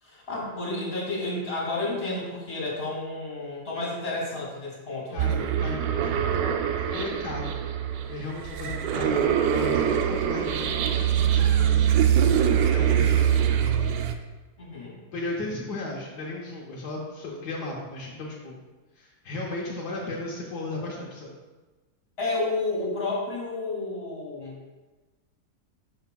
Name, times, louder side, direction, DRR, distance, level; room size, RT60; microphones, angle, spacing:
voice 1, 0.0-5.2 14.6-15.0 22.2-24.7, left 2 dB, 40° left, -5 dB, 2.7 m, -31 dB
voice 2, 5.1-6.4 6.9-7.5 8.1-9.2 9.5-12.0 12.7-13.7 15.1-18.6 19.0-21.4, left 2 dB, 80° left, -2 dB, 1.5 m, -35 dB
sound 1, 5.2-14.1, right 9 dB, 75° right, 1.0 m, -23 dB
11.5 x 5.6 x 2.3 m, 1.2 s
omnidirectional pair, 1.7 m